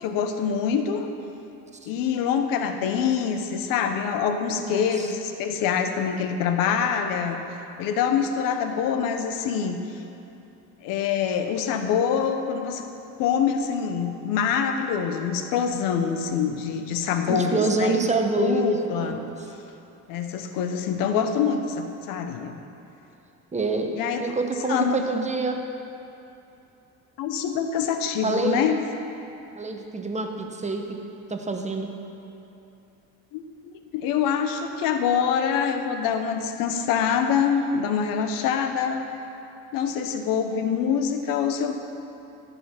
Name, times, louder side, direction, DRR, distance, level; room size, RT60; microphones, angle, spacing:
voice 1, 0.0-1.1 1.9-7.4 7.8-9.8 10.8-12.8 13.2-18.0 18.4-19.2 20.1-22.6 24.0-24.4 24.7-25.1 27.2-28.8 33.3-33.4 33.9-39.1 39.7-41.8, left 7 dB, 85° left, 6 dB, 0.9 m, -25 dB
voice 2, 17.3-18.7 18.9-19.3 23.5-25.6 28.2-28.6 29.6-31.0 31.3-31.9, right 3 dB, 20° right, 3 dB, 1.0 m, -26 dB
14.0 x 5.6 x 5.7 m, 2.8 s
cardioid pair, 90°, 33 cm